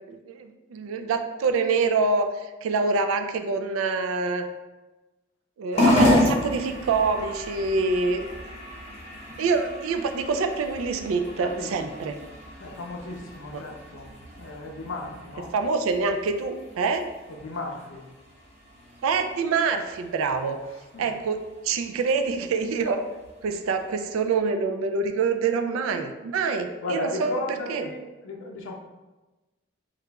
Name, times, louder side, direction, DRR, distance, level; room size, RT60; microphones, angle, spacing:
voice 1, 0.0-4.4 5.6-8.3 9.4-12.1 13.5-13.6 15.5-17.0 19.0-20.6 21.0-23.0 23.4-27.3 27.7-27.9, right 4 dB, 85° right, 7 dB, 0.3 m, -26 dB
sound 1, 5.7-24.3, left 1 dB, 30° left, 0.8 m, -31 dB
voice 2, 11.3-11.9 12.6-14.1 14.4-15.5 17.3-18.1 20.9-21.0 26.8-28.7, left 2 dB, 70° left, 1 dB, 0.5 m, -35 dB
2.9 x 2.4 x 3.3 m, 1.1 s
head